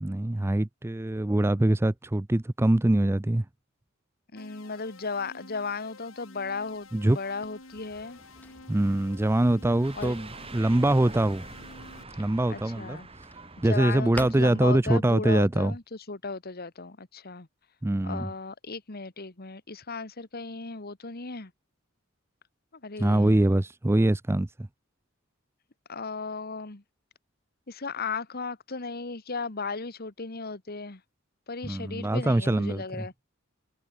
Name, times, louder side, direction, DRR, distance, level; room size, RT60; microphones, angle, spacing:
voice 1, 0.0-3.4 6.9-7.2 8.7-11.4 12.2-13.0 13.6-15.7 17.8-18.3 23.0-24.5 31.6-33.1, right 1 dB, 10° right, 0.4 m, -24 dB
voice 2, 4.3-8.2 10.0-10.5 12.5-13.1 13.6-17.5 18.0-21.5 22.8-23.4 25.9-26.8 27.7-31.0 31.5-33.1, left 4 dB, 50° left, 1.7 m, -36 dB
sound 1, 4.4-12.0, left 3 dB, 80° left, 6.4 m, -50 dB
Drawer open or close, 6.5-15.3, left 1 dB, 10° left, 1.5 m, -49 dB
sound 2, 9.8-14.8, right 3 dB, 30° right, 5.4 m, -45 dB
head